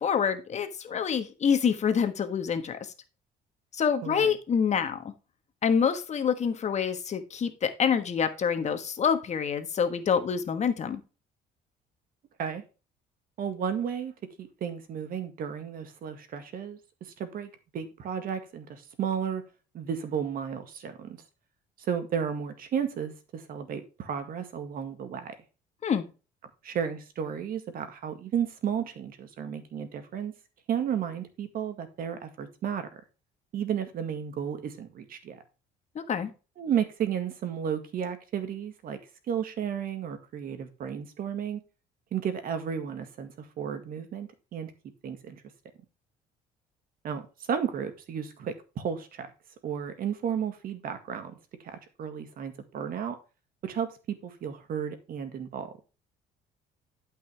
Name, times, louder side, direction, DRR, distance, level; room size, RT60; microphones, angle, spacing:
voice 1, 0.0-2.8 3.7-5.1 5.6-11.0 25.8-26.0 35.9-36.3, left 7 dB, 40° left, 1.4 m, -26 dB
voice 2, 4.0-4.4 12.4-12.6 13.4-14.1 14.4-19.4 19.7-21.2 21.9-25.4 26.6-30.3 30.7-32.9 33.5-35.4 36.6-39.0 39.3-41.6 42.1-44.7 45.0-45.4 47.0-47.2 47.5-49.3 49.6-53.2 53.6-54.0 54.2-55.7, right 8 dB, 60° right, 1.9 m, -33 dB
12.0 x 5.6 x 3.4 m
cardioid pair, 110°, 17 cm